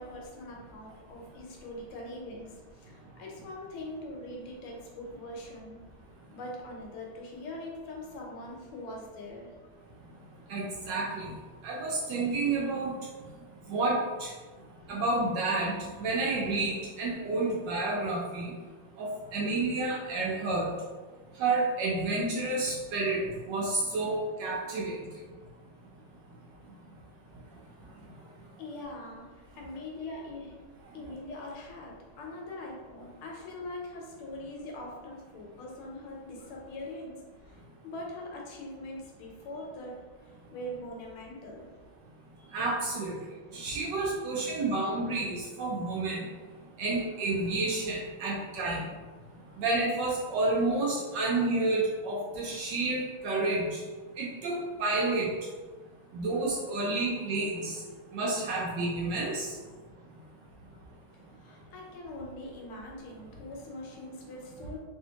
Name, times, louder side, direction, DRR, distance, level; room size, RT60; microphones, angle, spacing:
voice 1, 0.0-5.8 6.3-9.5 28.6-29.3 29.5-30.6 30.9-37.1 37.5-41.7 42.4-42.5 49.5-49.6 61.3-64.8, left 1 dB, 85° left, -1 dB, 1.6 m, -42 dB
voice 2, 10.5-11.3 11.6-12.9 13.7-14.3 14.9-15.7 16.0-18.4 19.0-20.7 21.4-24.9 42.5-43.2 43.5-46.2 46.8-48.8 49.6-53.8 54.2-55.3 56.1-57.7 58.1-59.5, right 2 dB, 75° right, -3 dB, 1.1 m, -30 dB
3.3 x 2.7 x 2.8 m, 1.4 s
omnidirectional pair, 2.3 m